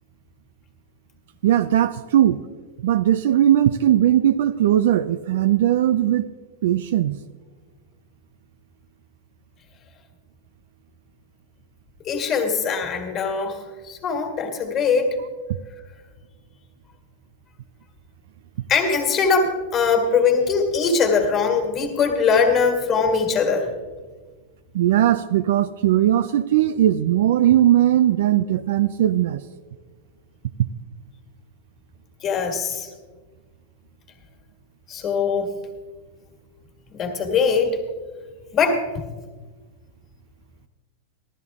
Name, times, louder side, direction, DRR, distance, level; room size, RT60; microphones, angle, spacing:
voice 1, 1.4-2.4 2.8-6.3 6.6-7.2 24.7-29.4, right 12 dB, 70° right, 12 dB, 0.4 m, -19 dB
voice 2, 12.0-15.2 18.7-23.7 32.2-32.9 34.9-35.5 36.9-37.8 38.5-39.1, left 5 dB, 30° left, 2 dB, 1.9 m, -21 dB
15.0 x 13.0 x 3.6 m, 1.4 s
supercardioid pair, 150°, 0 cm